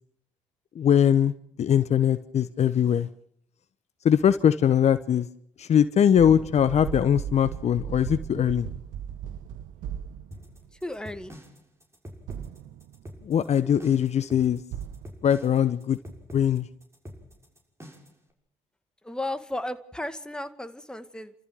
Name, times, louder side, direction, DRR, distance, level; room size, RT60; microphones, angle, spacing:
voice 1, 0.7-1.3 1.6-3.1 4.0-5.3 5.6-8.7 13.2-14.6 15.2-16.0 16.3-16.7, left 9 dB, 50° left, 14 dB, 1.0 m, -21 dB
sound 1, 6.2-10.8 12.3-13.1 14.7-15.1, right 9 dB, 70° right, 0.9 m, -37 dB
sound 2, 10.3-18.2, equal, 20° right, 6.4 m, -45 dB
voice 2, 10.7-11.3 19.0-21.3, left 1 dB, 5° left, 9 dB, 2.0 m, -34 dB
30.0 x 14.0 x 6.6 m, 0.64 s
hypercardioid pair, 50°, 14 cm